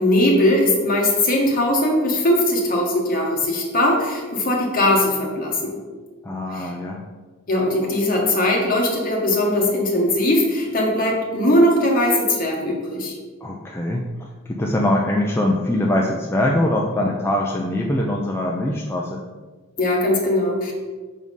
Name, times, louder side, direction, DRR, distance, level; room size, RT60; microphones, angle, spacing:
voice 1, 0.0-5.8 6.5-6.7 7.5-13.1 19.8-20.7, left 1 dB, 45° left, -1 dB, 1.5 m, -20 dB
voice 2, 6.2-7.0 13.4-19.2, left 1 dB, 10° left, -2 dB, 0.4 m, -23 dB
6.2 x 3.7 x 5.4 m, 1.4 s
head